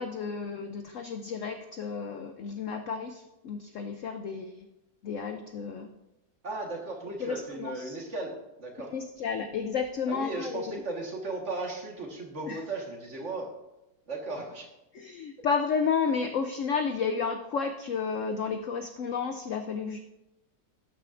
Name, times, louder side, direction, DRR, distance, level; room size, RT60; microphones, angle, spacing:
voice 1, 0.0-4.5 5.0-5.9 7.2-8.0 8.9-10.8 12.5-12.6 14.9-20.0, left 5 dB, 70° left, 7 dB, 0.7 m, -32 dB
voice 2, 6.4-8.3 8.6-8.9 10.1-13.5 14.1-14.7, right 2 dB, 45° right, 0 dB, 1.7 m, -36 dB
12.5 x 9.1 x 2.5 m, 0.94 s
omnidirectional pair, 1.9 m